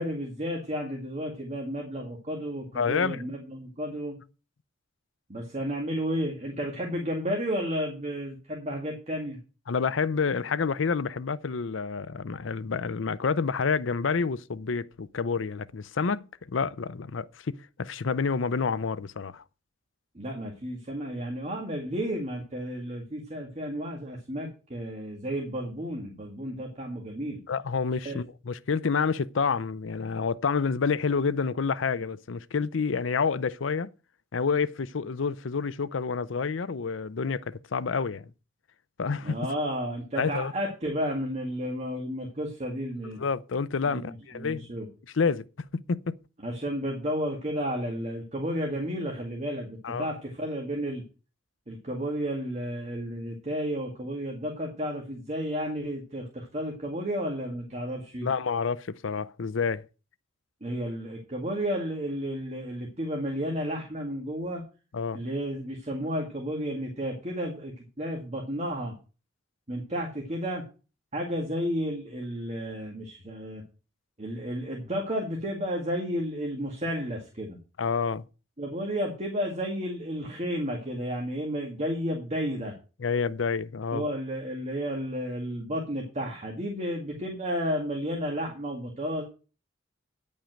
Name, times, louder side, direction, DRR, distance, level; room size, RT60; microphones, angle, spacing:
voice 1, 0.0-4.1 5.3-9.4 20.1-27.4 28.0-28.2 39.2-43.2 43.8-44.1 44.3-44.9 46.4-51.0 51.7-58.3 60.6-64.6 65.1-68.9 69.7-70.6 71.1-73.6 74.2-77.6 78.6-82.7 83.9-89.2, equal, 35° right, 2.0 m, -32 dB
voice 2, 2.7-3.2 9.7-19.4 27.5-33.9 34.3-38.3 39.0-39.4 40.2-40.5 43.2-44.7 45.1-45.5 45.7-46.2 49.8-50.1 58.2-59.9 64.9-65.2 77.8-78.3 83.0-84.1, left 5 dB, 75° left, 0.6 m, -28 dB
10.0 x 5.4 x 7.7 m
head